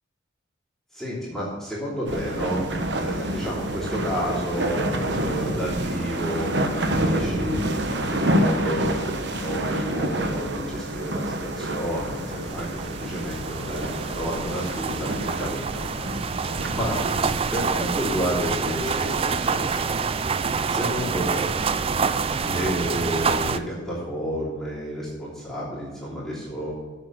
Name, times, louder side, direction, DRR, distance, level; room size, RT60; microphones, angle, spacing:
voice 1, 0.9-2.6 3.0-9.0 9.4-13.9 14.1-16.0 16.6-17.0 17.5-20.0 20.7-21.5 22.4-26.7, equal, ahead, -9 dB, 3.1 m, -30 dB
sound 1, 2.1-17.3, right 1 dB, 60° right, 1.0 m, -28 dB
sound 2, 12.1-23.6, right 5 dB, 30° right, 0.4 m, -27 dB
7.6 x 7.3 x 7.8 m, 1.4 s
head